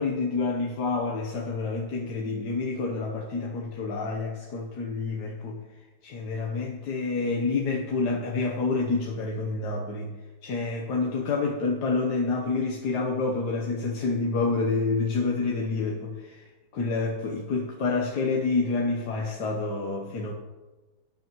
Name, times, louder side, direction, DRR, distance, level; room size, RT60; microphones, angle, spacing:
voice 1, 0.0-5.6 6.0-10.1 10.4-16.5 16.7-20.3, left 3 dB, 60° left, 0 dB, 1.4 m, -28 dB
15.0 x 9.9 x 3.0 m, 1.2 s
omnidirectional pair, 2.2 m